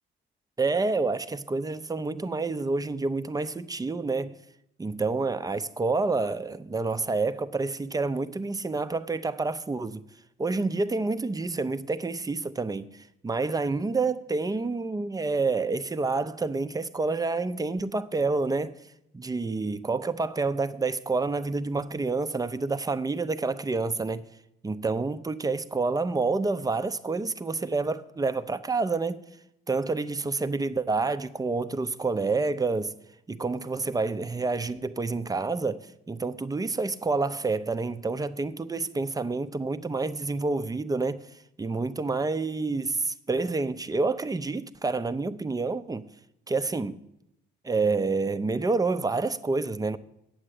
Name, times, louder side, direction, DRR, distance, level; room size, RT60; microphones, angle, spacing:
voice 1, 0.6-4.3 4.8-10.0 10.4-18.8 19.1-24.2 24.6-29.2 29.7-32.9 33.3-41.3 41.6-46.0 46.5-47.0 47.6-50.0, right 3 dB, 20° right, 0.6 m, -28 dB
8.6 x 7.6 x 8.2 m
cardioid pair, 90°, 20 cm